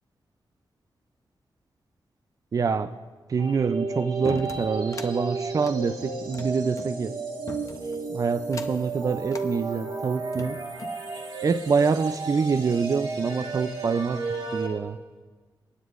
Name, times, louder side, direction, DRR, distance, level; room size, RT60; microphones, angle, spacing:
voice 1, 2.5-2.9 3.3-7.2 8.1-10.6 11.4-14.3 14.5-15.0, right 5 dB, 45° right, 11 dB, 0.4 m, -26 dB
sound 1, 3.4-14.7, right 3 dB, 70° right, 2.0 m, -33 dB
sound 2, 4.2-5.1 5.5-6.9 7.5-8.0 8.4-8.9 9.3-9.5 10.1-11.0, left 3 dB, 40° left, 0.7 m, -40 dB
25.0 x 9.5 x 2.5 m, 1.4 s
wide cardioid pair, 100°, 8 cm